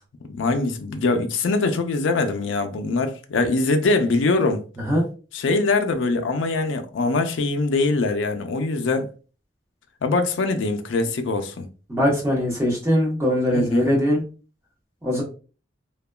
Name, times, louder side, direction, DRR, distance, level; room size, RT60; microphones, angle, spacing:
voice 1, 0.3-4.6 5.3-9.1 10.0-11.7 13.5-13.9, left 3 dB, 75° left, 0.4 m, -23 dB
voice 2, 11.9-14.2 15.0-15.2, equal, 15° right, 0.9 m, -21 dB
2.8 x 2.2 x 2.2 m
head